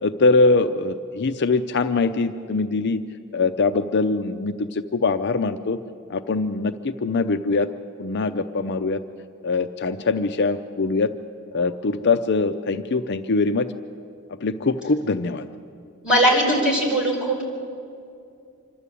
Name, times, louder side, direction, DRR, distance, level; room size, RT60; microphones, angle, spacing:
voice 1, 0.0-3.0 3.3-5.8 6.1-7.7 8.0-9.0 9.4-11.1 11.5-13.7 14.4-15.5, left 3 dB, 55° left, 9 dB, 0.6 m, -22 dB
voice 2, 16.0-17.4, right 1 dB, 5° right, -4 dB, 5.1 m, -19 dB
26.5 x 12.5 x 8.4 m, 2.5 s
head